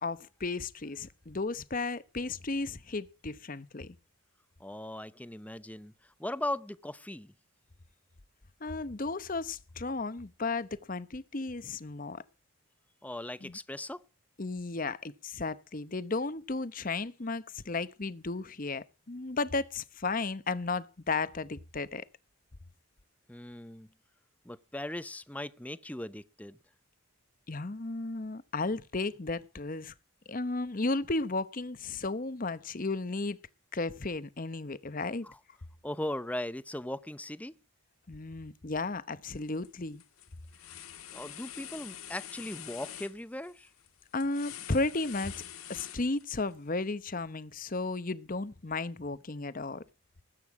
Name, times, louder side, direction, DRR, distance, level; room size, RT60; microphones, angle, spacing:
voice 1, 0.0-3.9 8.6-12.2 13.4-13.6 14.4-22.0 27.5-29.9 30.3-33.4 33.7-35.3 38.1-40.0 44.1-45.3 45.7-49.8, left 3 dB, 40° left, 0.9 m, -34 dB
voice 2, 4.6-7.3 13.0-14.0 23.3-23.9 24.4-26.6 35.2-35.4 35.8-37.6 41.1-43.7, left 1 dB, 5° left, 0.6 m, -38 dB
sound 1, 39.4-39.7 40.0-46.5, left 11 dB, 80° left, 1.7 m, -46 dB
19.5 x 9.1 x 4.8 m
head